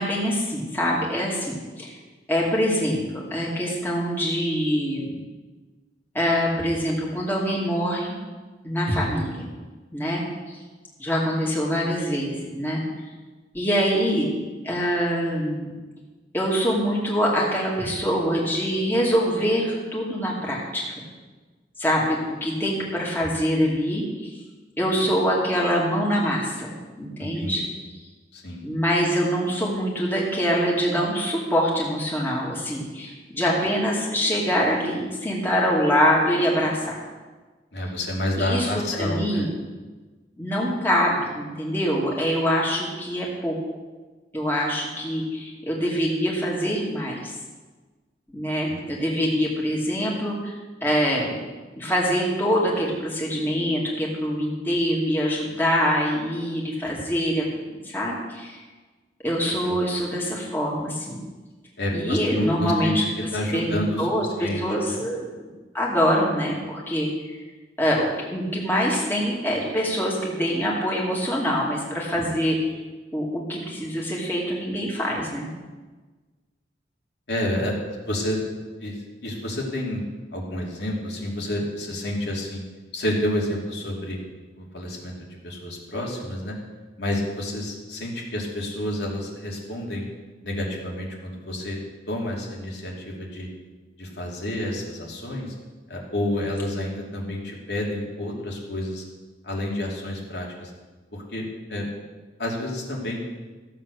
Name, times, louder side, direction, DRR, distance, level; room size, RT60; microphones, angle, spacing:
voice 1, 0.0-1.9 2.3-5.2 6.1-8.2 8.6-9.5 9.9-10.2 10.5-10.6 11.0-12.8 13.5-14.3 14.6-15.7 16.3-21.0 21.8-24.3 24.8-27.6 28.6-37.0 38.4-38.7 39.0-39.5 40.4-43.6 44.3-47.3 48.3-50.5 50.8-51.4 51.8-57.4 57.8-58.6 59.2-61.2 61.9-63.0 63.5-65.3 65.7-67.4 67.8-72.6 73.1-75.5, equal, 10° left, -4 dB, 2.5 m, -24 dB
voice 2, 27.2-27.7 28.3-28.6 37.7-39.5 48.8-48.9 59.7-59.8 61.8-62.9 63.3-64.1 64.4-64.6 64.9-65.0 77.3-77.7 78.1-78.4 78.8-80.0 80.3-82.6 82.9-84.2 84.6-85.1 85.4-86.6 87.0-90.0 90.4-91.8 92.1-93.5 94.0-95.5 95.9-99.0 99.4-100.7 101.1-101.4 101.7-101.9 102.4-103.2, left 1 dB, 75° left, -2 dB, 2.8 m, -29 dB
15.0 x 7.7 x 6.7 m, 1.3 s
head